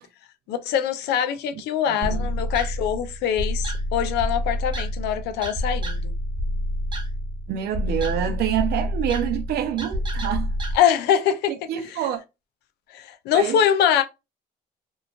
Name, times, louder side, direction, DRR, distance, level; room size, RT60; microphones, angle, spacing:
voice 1, 0.5-6.1 10.7-11.5 12.9-14.0, left 9 dB, 80° left, 0.5 m, -23 dB
voice 2, 1.9-2.3 7.5-10.5 11.7-12.2 13.3-13.6, right 10 dB, 70° right, 0.6 m, -26 dB
sound 1, 2.0-10.7, equal, 25° right, 0.9 m, -28 dB
3.0 x 2.3 x 2.3 m
cardioid pair, 110°, 17 cm